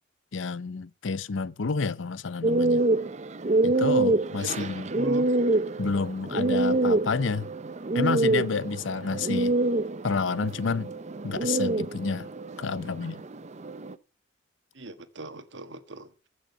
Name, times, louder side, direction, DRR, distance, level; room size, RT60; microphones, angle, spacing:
voice 1, 0.3-2.8 3.6-4.9 5.8-7.5 7.9-9.5 10.0-10.9 11.2-12.3 12.6-13.2, left 4 dB, 70° left, 0.6 m, -29 dB
sound 1, 2.4-13.9, right 2 dB, 35° right, 0.6 m, -26 dB
voice 2, 4.3-5.3 14.7-16.3, right 2 dB, 65° right, 1.5 m, -39 dB
15.0 x 6.4 x 7.2 m
head